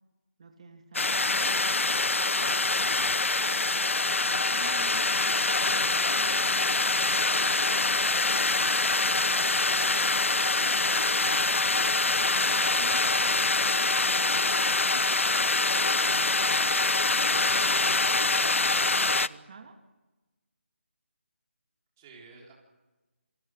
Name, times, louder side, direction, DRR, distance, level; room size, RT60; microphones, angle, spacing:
voice 1, 0.4-1.9 4.0-5.1 5.6-8.6 9.2-11.8 12.3-13.5 16.0-16.8 17.4-19.8, right 4 dB, 30° right, 5 dB, 2.4 m, -50 dB
sound 1, 0.9-19.3, left 3 dB, 80° left, 0.9 m, -25 dB
voice 2, 2.1-3.3 13.8-14.3 22.0-22.5, right 4 dB, 15° right, -1 dB, 4.2 m, -52 dB
Walk footsteps, 10.1-10.4 10.7-11.1 11.5-12.5 12.9-14.1 14.4-14.8 15.2-15.5 15.8-17.0 17.4-17.7, left 4 dB, 20° left, 4.5 m, -60 dB
28.0 x 25.0 x 6.4 m, 1.2 s
figure-of-eight pair, 175°, 7 cm